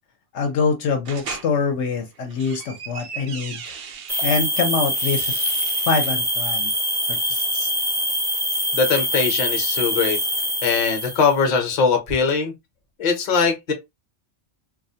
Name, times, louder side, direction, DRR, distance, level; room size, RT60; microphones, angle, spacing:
voice 1, 0.3-3.8 4.2-5.4 5.8-6.7 7.1-7.7, left 5 dB, 70° left, 0.8 m, -24 dB
sound 1, 1.0-1.5 2.1-4.4 4.8-6.1, right 6 dB, 65° right, 0.6 m, -37 dB
sound 2, 4.1-11.3, equal, 5° right, 0.4 m, -24 dB
voice 2, 8.7-10.2 10.6-12.5 13.0-13.7, left 5 dB, 45° left, 0.7 m, -21 dB
2.3 x 2.0 x 2.6 m
omnidirectional pair, 1.3 m